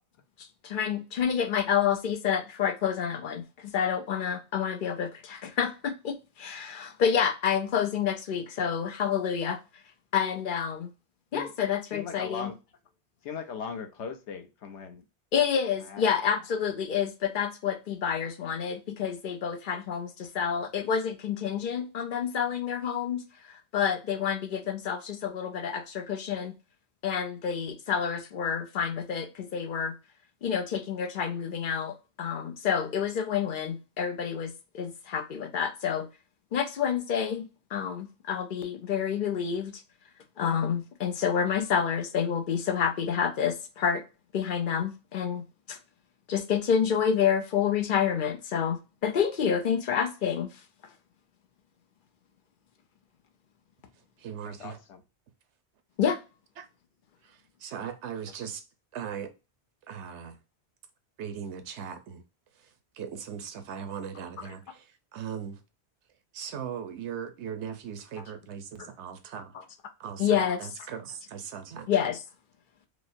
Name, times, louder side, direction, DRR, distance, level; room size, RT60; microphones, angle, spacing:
voice 1, 0.6-9.6 10.1-10.9 11.3-12.5 15.3-23.2 23.5-26.5 27.0-29.9 30.4-36.1 36.5-37.5 37.7-39.8 40.4-44.0 44.3-45.8 46.3-50.5 56.0-56.2 64.4-64.6 68.2-68.3 68.8-68.9 69.5-69.7 70.2-70.7 71.9-72.2, left 7 dB, 60° left, 0.6 m, -28 dB
voice 2, 11.9-12.5 13.2-15.0 15.8-16.0 54.5-55.0, left 6 dB, 85° left, 1.0 m, -38 dB
voice 3, 54.2-54.8 56.6-56.7 57.6-58.6 58.9-59.3 59.9-60.4 61.2-62.2 63.0-64.6 65.1-65.6 66.3-69.5 70.0-70.2 70.6-71.9, right 8 dB, 90° right, 1.0 m, -38 dB
4.9 x 2.0 x 2.5 m
omnidirectional pair, 1.1 m